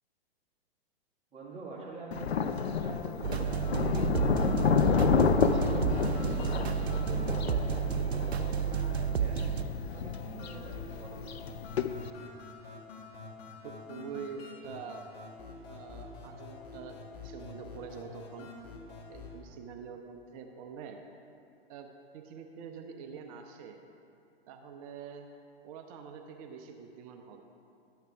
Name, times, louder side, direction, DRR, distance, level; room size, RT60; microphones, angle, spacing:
voice 1, 1.3-4.0 4.4-6.0 6.4-9.6 9.9-11.4, right 3 dB, 20° right, -4 dB, 1.8 m, -46 dB
Thunder, 2.1-12.1, left 6 dB, 85° left, 0.5 m, -30 dB
sound 1, 3.2-9.6, right 9 dB, 85° right, 0.5 m, -31 dB
sound 2, 3.4-19.4, left 4 dB, 45° left, 1.8 m, -47 dB
voice 2, 13.6-15.0 15.7-18.5 19.1-21.0 21.7-21.9 22.1-23.8 24.5-25.3 25.6-27.4, right 6 dB, 35° right, 4 dB, 0.7 m, -45 dB
12.0 x 8.1 x 3.4 m, 2.6 s
figure-of-eight pair, 110°, 31 cm